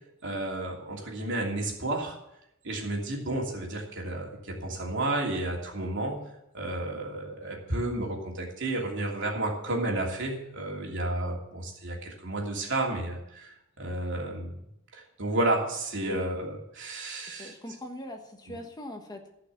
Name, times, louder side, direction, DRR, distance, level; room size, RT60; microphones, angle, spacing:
voice 1, 0.2-2.2 2.6-6.2 6.5-14.6 14.9-17.5, right 2 dB, 60° right, -1 dB, 2.9 m, -31 dB
voice 2, 16.0-16.3 17.3-19.3, left 1 dB, 20° left, 3 dB, 1.3 m, -41 dB
15.0 x 5.9 x 7.5 m, 0.81 s
head